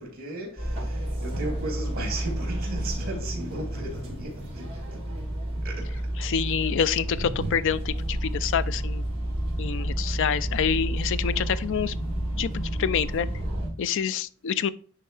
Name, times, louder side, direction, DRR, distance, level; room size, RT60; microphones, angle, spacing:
voice 1, 0.0-5.0 5.6-6.3, right 2 dB, 45° right, 3.0 m, -36 dB
sound 1, 0.6-13.7, right 1 dB, 30° right, 3.5 m, -30 dB
voice 2, 6.2-9.0 9.6-11.9 12.4-13.3 13.8-14.7, left 7 dB, 60° left, 0.4 m, -27 dB
10.5 x 3.7 x 3.3 m
head